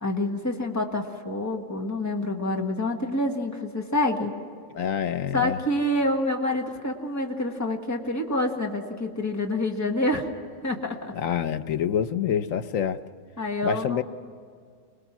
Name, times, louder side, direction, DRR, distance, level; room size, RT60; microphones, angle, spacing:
voice 1, 0.0-4.3 5.3-10.3 10.6-11.2 13.4-14.0, left 1 dB, 15° left, 1 dB, 1.6 m, -27 dB
voice 2, 4.7-5.6 11.1-13.0 13.6-14.0, left 9 dB, 85° left, 10 dB, 1.2 m, -26 dB
26.0 x 20.0 x 6.0 m, 2.1 s
omnidirectional pair, 1.3 m